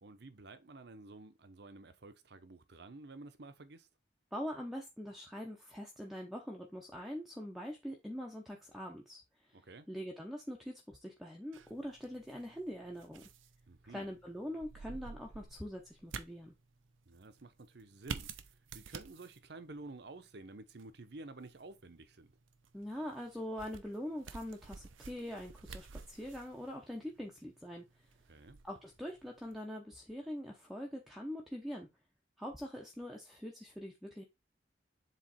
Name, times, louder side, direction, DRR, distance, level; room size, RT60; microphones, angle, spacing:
voice 1, 0.0-3.9 9.5-9.9 13.7-14.2 17.1-22.3 28.3-28.6, right 2 dB, 55° right, 0.8 m, -51 dB
voice 2, 4.3-13.2 13.9-16.5 22.7-28.1 28.6-31.9 32.4-34.2, equal, ahead, 0.8 m, -43 dB
sound 1, 11.5-29.6, right 5 dB, 90° right, 0.7 m, -51 dB
7.5 x 3.2 x 4.2 m
head